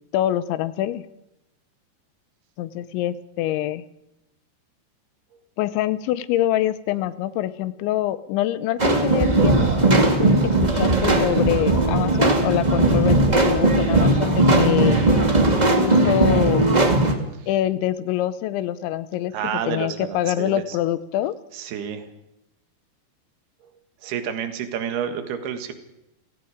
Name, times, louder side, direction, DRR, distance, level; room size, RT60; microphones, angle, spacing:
voice 1, 0.1-1.0 2.6-3.8 5.6-15.0 15.8-16.6 17.5-19.3 19.7-21.3, left 13 dB, 90° left, 15 dB, 3.2 m, -25 dB
sound 1, 8.8-17.1, right 2 dB, 40° right, 0.6 m, -18 dB
voice 2, 17.2-17.5 19.3-20.8 21.5-22.1 24.0-25.7, right 8 dB, 65° right, 7 dB, 3.6 m, -30 dB
30.0 x 17.0 x 5.1 m, 0.90 s
omnidirectional pair, 5.2 m